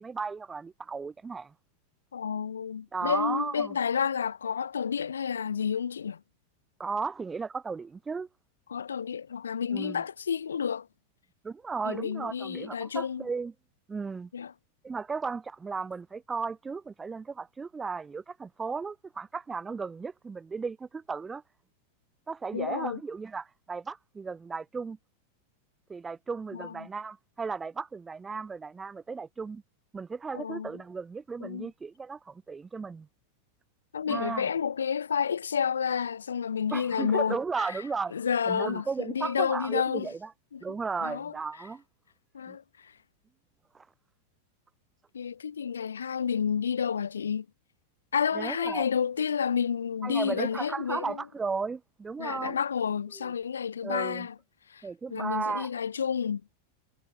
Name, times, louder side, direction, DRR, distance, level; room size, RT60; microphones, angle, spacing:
voice 1, 0.0-1.5 2.9-3.7 6.8-8.3 9.7-10.0 11.4-13.5 13.9-14.3 14.8-21.4 22.3-25.0 25.9-29.6 29.9-33.1 34.1-34.5 36.7-38.2 38.5-40.3 40.6-41.8 42.5-42.6 43.7-43.9 48.3-48.9 50.0-52.6 53.2-53.3 53.8-54.3 54.8-55.7, right 5 dB, 15° right, 1.1 m, -35 dB
voice 2, 2.1-6.2 8.7-10.9 11.8-13.3 14.3-14.5 22.5-23.0 26.5-26.9 30.3-30.7 31.4-31.7 33.9-37.7 38.1-40.1 40.5-40.6 41.0-41.3 42.3-42.9 45.1-47.5 48.1-51.2 52.2-54.3 54.7-56.4, left 7 dB, 70° left, 1.0 m, -30 dB
figure-of-eight pair, 90°, 0 cm